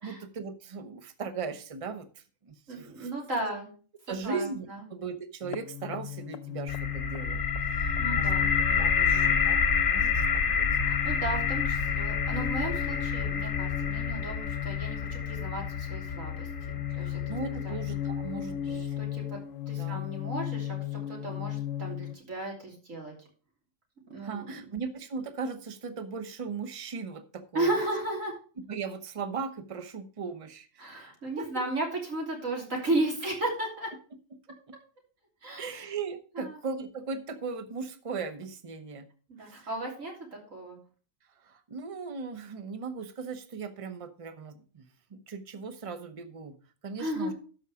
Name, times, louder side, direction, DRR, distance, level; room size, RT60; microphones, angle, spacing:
voice 1, 0.0-3.1 4.1-10.7 16.9-19.0 19.7-20.0 24.2-27.7 28.7-30.9 31.4-31.6 35.6-39.1 39.4-39.7 41.4-46.5 46.8-47.3, right 5 dB, 30° right, 10 dB, 0.8 m, -38 dB
voice 2, 2.7-3.7 4.2-4.9 8.0-9.3 10.8-16.5 16.9-17.2 17.6-17.8 18.7-19.4 19.7-23.1 24.1-24.5 27.5-28.4 30.8-33.9 35.4-35.9 36.4-36.6 39.3-40.8 47.0-47.3, right 2 dB, 75° right, -1 dB, 3.5 m, -34 dB
sound 1, 5.4-22.1, left 11 dB, 80° left, 1.0 m, -36 dB
sound 2, 6.7-18.5, left 6 dB, 45° left, 1.0 m, -29 dB
12.5 x 5.3 x 4.9 m, 0.39 s
omnidirectional pair, 1.4 m